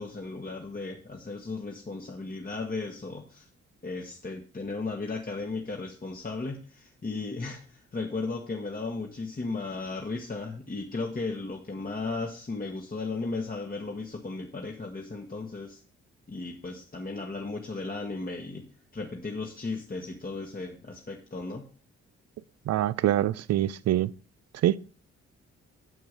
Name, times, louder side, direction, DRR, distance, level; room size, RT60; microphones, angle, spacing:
voice 1, 0.0-3.5 3.8-15.8 16.3-18.6 18.9-21.6, left 3 dB, 30° left, 1.4 m, -35 dB
voice 2, 22.7-24.1 24.6-24.8, right 13 dB, 55° right, 0.5 m, -24 dB
6.9 x 6.3 x 5.3 m
supercardioid pair, 45°, 31 cm